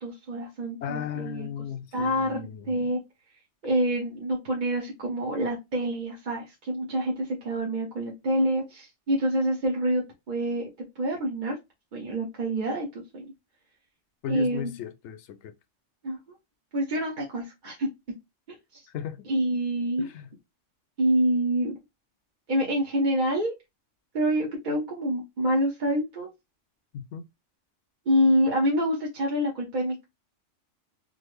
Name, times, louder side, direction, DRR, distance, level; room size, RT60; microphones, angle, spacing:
voice 1, 0.0-1.5 1.9-3.0 3.6-10.7 11.0-11.5 11.9-12.9 13.1-13.3 14.3-14.7 16.0-16.2 16.7-17.9 18.5-18.8 19.3-20.1 21.0-21.8 22.5-23.5 24.1-26.3 28.1-30.0, equal, 45° right, 0.9 m, -27 dB
voice 2, 0.8-2.8 14.2-15.5 18.9-19.3 20.0-20.3 26.9-27.3, left 9 dB, 70° left, 0.9 m, -36 dB
3.8 x 2.0 x 3.2 m
omnidirectional pair, 1.2 m